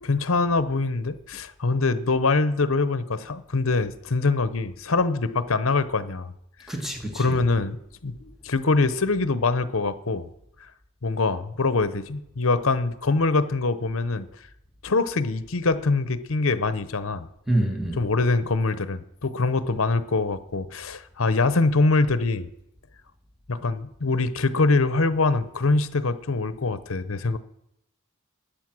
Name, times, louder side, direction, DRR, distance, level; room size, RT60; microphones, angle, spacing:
voice 1, 0.0-6.3 7.2-7.8 8.0-10.3 11.0-14.3 14.8-17.3 18.0-22.5 23.5-27.4, left 3 dB, 65° left, 0.8 m, -24 dB
voice 2, 6.7-7.4 17.5-18.0, right 1 dB, ahead, 1.6 m, -26 dB
12.5 x 8.8 x 6.1 m
head